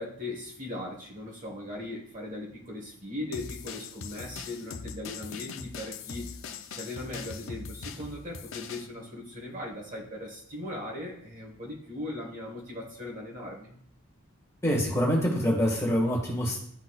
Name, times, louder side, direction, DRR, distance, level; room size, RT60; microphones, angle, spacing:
voice 1, 0.0-6.3 6.7-13.8, left 1 dB, 35° right, -1 dB, 1.2 m, -39 dB
sound 1, 3.3-8.9, left 5 dB, 65° left, 0.5 m, -41 dB
voice 2, 14.6-16.6, equal, 15° left, -3 dB, 1.7 m, -25 dB
11.5 x 4.0 x 2.3 m, 0.64 s
head